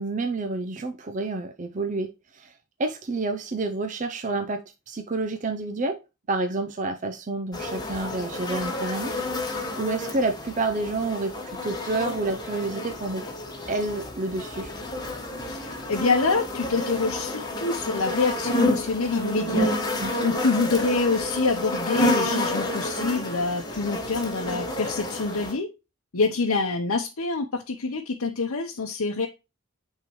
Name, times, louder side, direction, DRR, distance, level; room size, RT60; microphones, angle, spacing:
voice 1, 0.0-6.0 6.3-13.2 13.7-14.7 19.9-20.1, right 3 dB, 35° right, 0.5 m, -29 dB
sound 1, 7.5-25.5, left 1 dB, 20° left, 1.4 m, -30 dB
voice 2, 15.4-25.7 26.1-29.3, left 3 dB, 85° left, 0.8 m, -26 dB
9.3 x 3.7 x 3.0 m
head